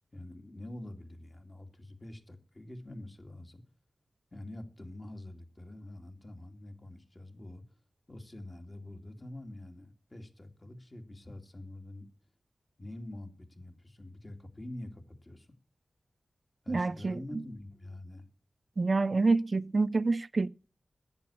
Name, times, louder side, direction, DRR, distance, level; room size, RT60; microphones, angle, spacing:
voice 1, 0.1-3.6 4.3-7.6 8.1-12.1 12.8-15.5 16.6-18.3, left 1 dB, 30° left, 2.3 m, -46 dB
voice 2, 16.7-17.2 18.8-20.5, right 3 dB, 50° right, 0.5 m, -27 dB
10.5 x 8.5 x 8.5 m
cardioid pair, 60°, 0 cm